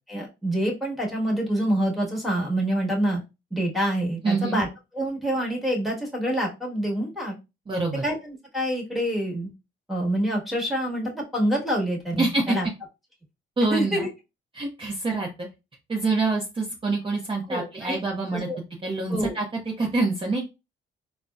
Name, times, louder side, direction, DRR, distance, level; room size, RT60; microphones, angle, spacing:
voice 1, 0.1-3.2 3.5-4.7 4.9-7.4 8.0-9.5 9.9-12.7 13.7-14.1 17.5-18.0 18.5-18.6 19.1-19.3, right 1 dB, ahead, -2 dB, 1.3 m, -26 dB
voice 2, 4.2-4.6 7.7-8.0 12.2-12.6 13.6-14.1 14.5-15.5 15.9-18.5 18.8-19.5 19.8-20.4, right 3 dB, 25° right, -1 dB, 0.7 m, -26 dB
3.8 x 2.1 x 2.3 m, 0.25 s
cardioid pair, 90°, 20 cm